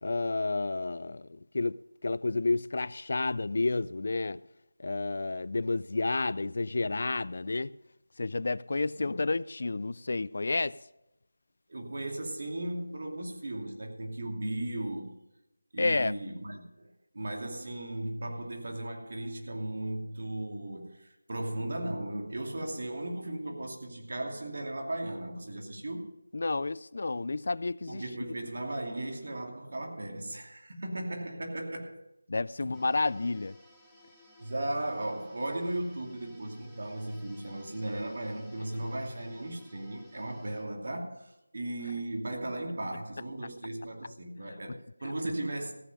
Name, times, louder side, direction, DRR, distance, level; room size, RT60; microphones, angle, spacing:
voice 1, 0.0-4.4 4.8-7.7 8.2-10.8 15.8-16.1 26.3-28.0 32.3-33.5, left 3 dB, 50° left, 0.3 m, -30 dB
voice 2, 11.7-15.1 15.7-26.1 27.9-32.1 32.6-32.8 34.4-45.7, right 1 dB, 55° right, 2.6 m, -36 dB
sound 1, 32.7-40.6, left 1 dB, ahead, 1.4 m, -58 dB
15.0 x 8.5 x 5.4 m
figure-of-eight pair, 170°, 0 cm